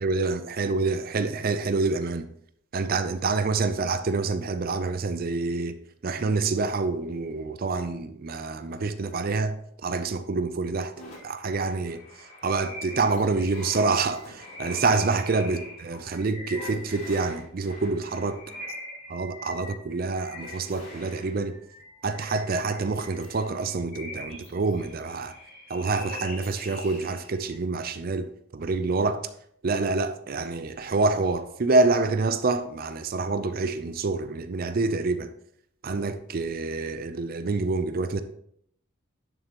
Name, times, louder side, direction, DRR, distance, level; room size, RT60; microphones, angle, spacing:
voice 1, 0.0-2.3 2.7-5.7 6.0-9.5 9.8-10.9 11.2-12.0 12.4-18.4 19.1-21.5 22.0-25.3 25.7-29.2 29.6-35.3 35.8-38.2, right 3 dB, 45° right, 0.5 m, -27 dB
sound 1, 11.0-27.6, left 1 dB, 35° left, 3.8 m, -43 dB
11.0 x 6.9 x 2.9 m
head